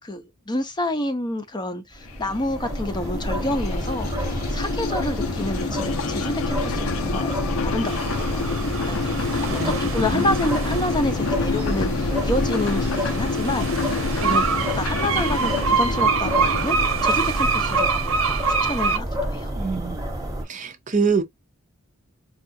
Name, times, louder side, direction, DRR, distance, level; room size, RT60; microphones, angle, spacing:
voice 1, 0.0-7.4 7.6-8.6 8.8-9.5 9.8-14.4 14.7-16.8 17.0-19.1 19.3-19.5, left 1 dB, 20° left, 0.6 m, -29 dB
sound 1, 1.9-20.4, equal, 15° right, 0.9 m, -29 dB
sound 2, 2.1-18.7, left 4 dB, 75° left, 0.6 m, -28 dB
sound 3, 7.8-19.0, right 5 dB, 75° right, 0.9 m, -26 dB
voice 2, 19.5-20.0 20.4-21.2, right 5 dB, 35° right, 0.6 m, -25 dB
4.6 x 2.4 x 2.6 m
head